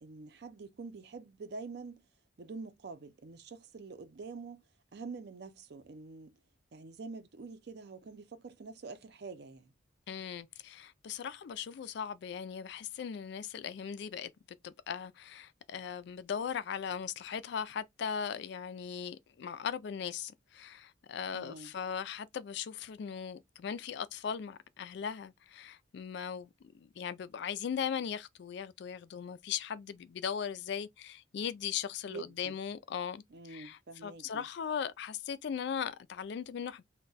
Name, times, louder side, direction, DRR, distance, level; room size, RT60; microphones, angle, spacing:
voice 1, 0.0-2.0 2.4-4.6 4.9-6.4 6.7-9.7 21.3-21.7 32.1-32.6 33.3-34.5, right 4 dB, 55° right, 0.5 m, -46 dB
voice 2, 10.1-14.3 14.6-26.5 26.7-36.8, left 7 dB, 60° left, 0.3 m, -38 dB
2.2 x 2.2 x 3.9 m
head